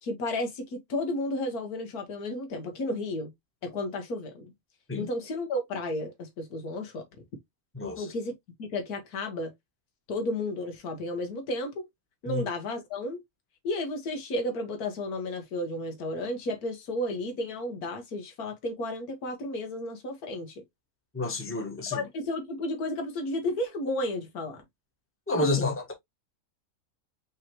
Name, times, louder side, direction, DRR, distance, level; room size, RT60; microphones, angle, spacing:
voice 1, 0.0-3.3 3.6-4.5 5.0-7.0 8.0-8.3 8.6-9.5 10.1-11.9 12.2-13.2 13.6-20.6 21.9-24.6 25.3-25.7, left 1 dB, 85° left, 1.6 m, -33 dB
voice 2, 7.7-8.1 12.3-12.4 21.1-22.0 25.3-25.9, left 2 dB, 10° left, 1.1 m, -29 dB
5.5 x 3.1 x 2.9 m
omnidirectional pair, 1.6 m